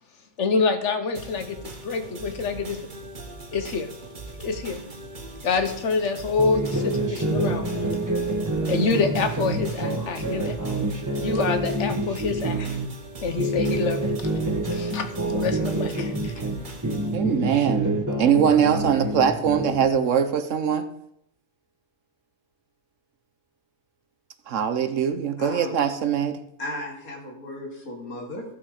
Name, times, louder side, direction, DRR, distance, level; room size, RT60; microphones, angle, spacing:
voice 1, 0.4-2.8 3.5-3.9 4.4-4.8 5.4-8.0 8.7-10.6 11.2-12.8 13.2-14.2 14.7-16.3, left 4 dB, 55° left, 8 dB, 1.4 m, -26 dB
sound 1, 1.1-17.1, right 2 dB, 35° right, 1.4 m, -41 dB
sound 2, 6.4-12.9 13.3-16.6 16.8-20.0, right 2 dB, 15° right, 1.2 m, -27 dB
voice 2, 17.1-17.9 18.2-20.9 24.5-26.4, right 7 dB, 65° right, 10 dB, 1.1 m, -22 dB
voice 3, 25.4-25.7 26.6-28.4, left 1 dB, 90° left, 0 dB, 2.8 m, -35 dB
14.5 x 6.1 x 4.9 m, 0.74 s
omnidirectional pair, 1.5 m